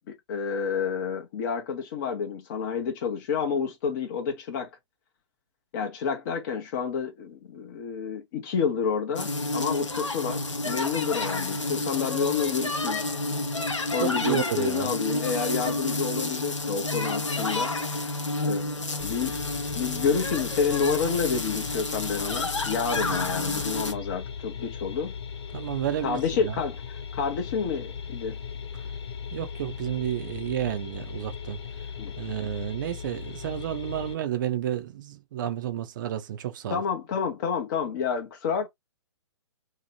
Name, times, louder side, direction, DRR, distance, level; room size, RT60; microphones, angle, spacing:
voice 1, 0.1-4.7 5.7-13.0 13.6-17.7 18.1-18.2 18.4-19.4 19.7-25.2 26.0-28.4 32.0-32.1 36.7-38.7, left 6 dB, 40° left, 0.6 m, -29 dB
sound 1, 9.2-23.9, left 2 dB, 85° left, 0.7 m, -30 dB
voice 2, 14.0-14.9 22.9-23.0 25.5-26.6 29.3-31.6 32.2-36.8, right 11 dB, 40° right, 0.5 m, -31 dB
sound 2, 19.0-34.1, left 7 dB, 60° left, 1.0 m, -38 dB
2.8 x 2.1 x 2.8 m
figure-of-eight pair, 120°, 15 cm